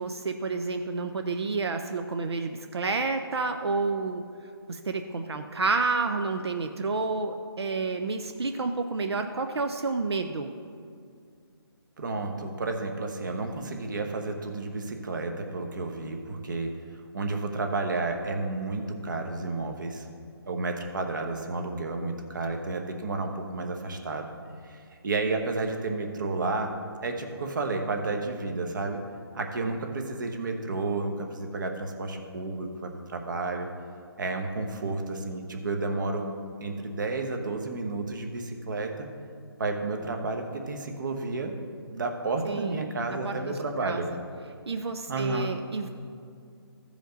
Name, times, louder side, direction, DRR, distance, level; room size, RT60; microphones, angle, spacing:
voice 1, 0.0-4.2 4.7-10.5 42.4-42.8 43.2-43.5 43.8-44.2 44.7-45.9, right 4 dB, 85° right, 6 dB, 0.6 m, -30 dB
voice 2, 12.0-16.7 17.1-20.1 20.4-24.3 24.7-24.8 25.0-26.7 27.0-29.0 29.3-33.7 34.2-36.3 36.6-39.1 39.6-44.1 45.1-45.5, right 3 dB, 50° right, 4 dB, 1.1 m, -31 dB
15.0 x 5.1 x 3.9 m, 2.3 s
hypercardioid pair, 165°, 13 cm